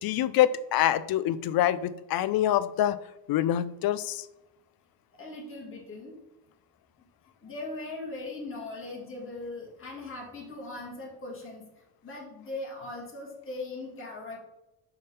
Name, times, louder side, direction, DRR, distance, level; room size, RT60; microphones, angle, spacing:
voice 1, 0.0-3.0 3.3-4.3, left 12 dB, 50° left, 16 dB, 0.4 m, -25 dB
voice 2, 5.2-6.1 7.4-11.7 12.0-14.4, left 2 dB, 25° left, -3 dB, 2.0 m, -39 dB
5.2 x 3.8 x 5.3 m, 0.93 s
supercardioid pair, 85°, 49 cm